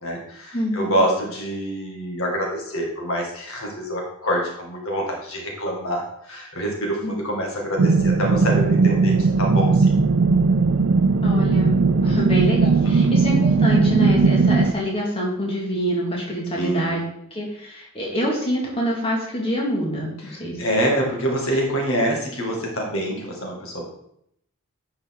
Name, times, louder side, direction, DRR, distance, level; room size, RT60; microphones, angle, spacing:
voice 1, 0.0-10.0 12.0-12.2 12.8-13.1 16.5-17.0 20.2-23.9, equal, 65° left, -1 dB, 2.2 m, -26 dB
voice 2, 0.5-1.0 7.0-7.2 11.2-17.0 17.3-20.6, equal, 25° left, -3 dB, 2.1 m, -26 dB
sound 1, 7.8-14.7, right 4 dB, 60° right, 0.5 m, -18 dB
10.5 x 5.6 x 3.8 m, 0.74 s
head